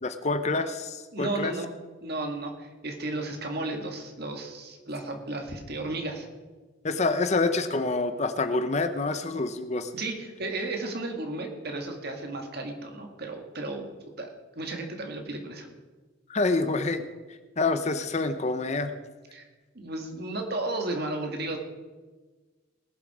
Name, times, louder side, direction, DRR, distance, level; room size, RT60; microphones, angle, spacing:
voice 1, 0.0-1.5 6.8-9.9 16.3-17.0 17.6-18.9, left 3 dB, 35° left, 9 dB, 0.7 m, -27 dB
voice 2, 1.1-1.7 2.0-6.3 9.9-13.9 14.2-15.7 19.3-19.4 19.8-21.6, right 2 dB, 50° right, 4 dB, 2.0 m, -34 dB
20.0 x 7.4 x 4.9 m, 1.3 s
head